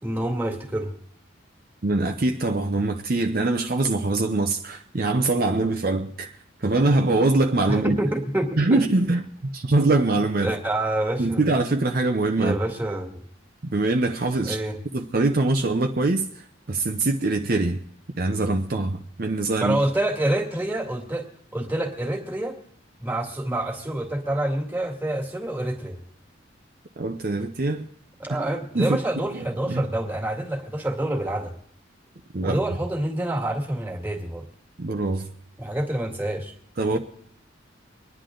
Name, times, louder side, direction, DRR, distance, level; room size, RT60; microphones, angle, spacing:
voice 1, 0.0-0.9 7.7-8.8 10.4-11.5 12.3-13.2 14.5-14.8 19.6-21.3 21.5-22.6 23.0-26.0 28.2-31.5 32.4-34.4 35.6-36.5 36.9-37.0, right 1 dB, 10° right, 2.1 m, -27 dB
voice 2, 1.8-6.3 6.6-8.0 8.6-9.2 9.5-10.5 11.2-12.6 13.7-14.6 14.9-16.3 16.7-17.8 18.2-19.8 27.0-27.8 28.7-29.0 29.3-29.8 32.3-32.6 34.8-35.3 36.8-37.0, right 2 dB, 50° right, 0.7 m, -23 dB
24.5 x 10.5 x 3.8 m
head